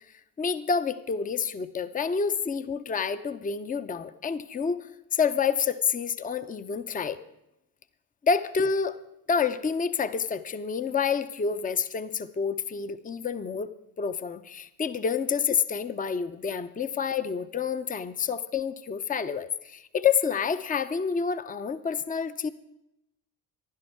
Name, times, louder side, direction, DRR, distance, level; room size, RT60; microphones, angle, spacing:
voice 1, 0.1-7.2 8.2-9.0 9.3-13.7 14.0-22.5, left 6 dB, 20° left, 13 dB, 0.7 m, -28 dB
15.5 x 11.5 x 4.6 m, 0.86 s
hypercardioid pair, 65°, 44 cm